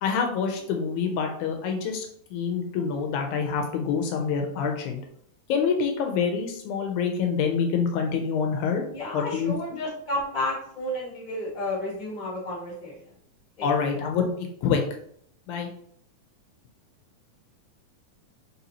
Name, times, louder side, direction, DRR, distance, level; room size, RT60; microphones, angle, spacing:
voice 1, 0.0-2.1 2.3-5.0 5.5-8.8 9.1-9.8 13.6-14.8 15.5-15.7, left 6 dB, 80° left, 3 dB, 2.0 m, -26 dB
voice 2, 8.9-12.9 13.6-13.9, left 1 dB, 20° left, -5 dB, 1.3 m, -32 dB
4.3 x 4.0 x 2.8 m, 0.66 s
omnidirectional pair, 3.5 m